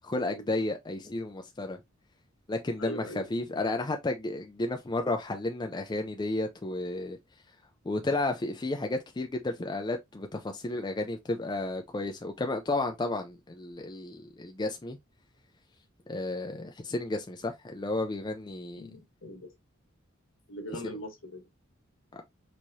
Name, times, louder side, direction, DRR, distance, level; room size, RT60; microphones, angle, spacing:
voice 1, 0.0-1.8 2.5-7.2 7.9-15.0 16.1-18.9 20.8-21.0 22.1-22.2, left 2 dB, 20° left, 0.4 m, -32 dB
voice 2, 2.8-3.3 18.8-19.5 20.5-21.5, equal, 65° left, 1.4 m, -41 dB
4.6 x 3.0 x 2.6 m
head